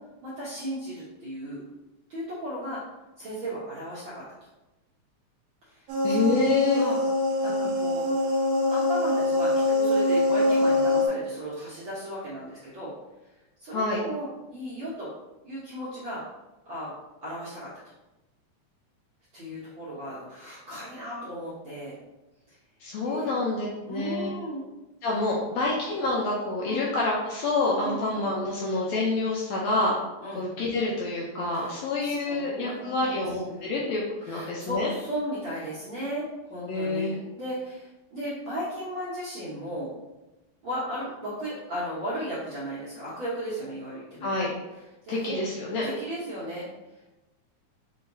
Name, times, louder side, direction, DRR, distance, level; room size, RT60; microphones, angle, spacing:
voice 1, 0.2-1.6 2.1-2.8 3.2-4.2 5.7-6.5 6.7-7.1 7.4-8.1 8.7-12.9 13.6-15.1 15.4-16.2 16.6-16.9 17.2-17.7 19.3-21.9 22.5-22.6 23.0-23.3 23.9-24.7 25.2-25.7 26.6-26.8 27.8-28.0 30.2-30.4 31.5-33.2 33.4-33.8 34.2-39.9 40.6-44.4 45.0-45.4 45.8-46.7, equal, 60° right, -9 dB, 1.4 m, -35 dB
sound 1, 5.9-11.1, left 2 dB, 80° right, 1.4 m, -24 dB
voice 2, 6.0-6.8 13.7-14.0 22.8-24.3 25.0-29.9 30.3-34.9 36.7-37.1 44.2-44.5 45.1-45.9, left 3 dB, 80° left, -4 dB, 1.6 m, -27 dB
5.6 x 2.8 x 2.6 m, 1.0 s
omnidirectional pair, 3.6 m